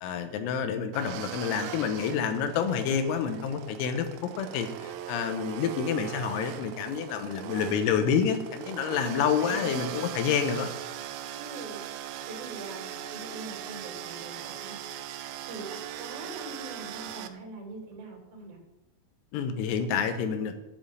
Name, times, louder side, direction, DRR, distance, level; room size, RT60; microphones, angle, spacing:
voice 1, 0.0-4.1 4.4-10.7 19.3-20.5, left 7 dB, 85° left, 7 dB, 3.8 m, -28 dB
sound 1, 0.9-17.3, right 10 dB, 85° right, 3.3 m, -39 dB
voice 2, 9.1-10.2 11.3-11.8 12.3-14.8 15.4-18.6, right 3 dB, 45° right, -1 dB, 4.9 m, -43 dB
10.0 x 7.7 x 8.8 m, 0.96 s
omnidirectional pair, 6.0 m